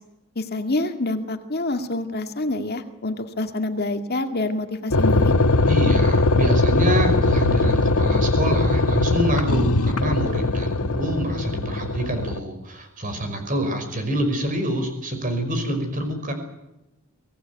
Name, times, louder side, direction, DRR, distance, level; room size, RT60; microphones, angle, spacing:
voice 1, 0.4-5.3, left 2 dB, 45° left, 6 dB, 2.1 m, -27 dB
sound 1, 4.9-12.4, left 2 dB, 85° left, 1.4 m, -20 dB
voice 2, 5.7-16.3, right 1 dB, 35° right, 7 dB, 5.2 m, -26 dB
24.0 x 17.5 x 9.4 m, 0.94 s
head